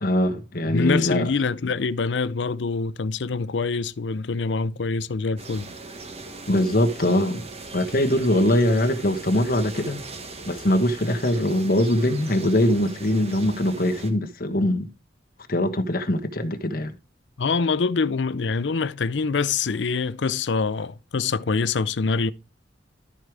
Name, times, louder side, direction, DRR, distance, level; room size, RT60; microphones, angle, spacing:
voice 1, 0.0-1.3 6.5-7.5 7.7-10.0 10.4-14.8 15.5-16.9, left 1 dB, 50° left, 1.3 m, -22 dB
voice 2, 0.7-5.7 17.4-22.3, left 4 dB, 75° left, 0.6 m, -25 dB
sound 1, 5.4-14.1, right 3 dB, 35° right, 1.4 m, -39 dB
12.5 x 4.7 x 4.9 m
head